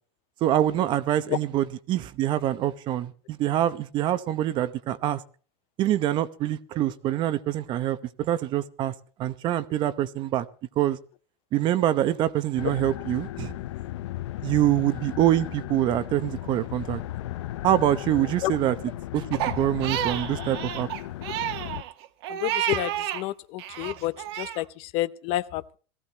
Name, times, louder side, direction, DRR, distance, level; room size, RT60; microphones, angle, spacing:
voice 1, 0.4-5.2 5.8-8.9 9.2-10.5 10.8-11.0 11.5-13.5 14.4-17.0 17.6-18.8 19.1-20.9, right 12 dB, 35° right, 0.9 m, -25 dB
sound 1, 12.6-21.8, left 14 dB, 90° left, 0.6 m, -36 dB
Crying sobbing, 19.3-23.2 23.6-24.6, right 12 dB, 65° right, 1.5 m, -31 dB
voice 2, 22.3-25.8, left 16 dB, 45° left, 0.6 m, -30 dB
18.0 x 15.0 x 3.0 m
supercardioid pair, 155°, 14 cm